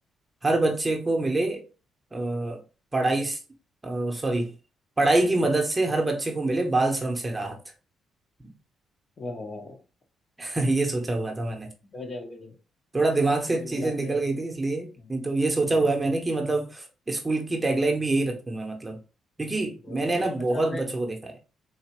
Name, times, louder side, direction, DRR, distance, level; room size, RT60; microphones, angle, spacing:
voice 1, 0.4-1.6 2.1-2.6 2.9-3.4 3.8-4.5 5.0-7.6 10.4-11.7 12.9-19.0 19.4-21.4, right 2 dB, 20° right, 0.9 m, -25 dB
voice 2, 9.2-9.8 11.9-12.6 13.3-14.2 15.0-15.2 15.6-15.9 19.8-20.8, left 2 dB, 40° left, 1.1 m, -38 dB
4.1 x 2.7 x 2.9 m
cardioid pair, 90°, 0 cm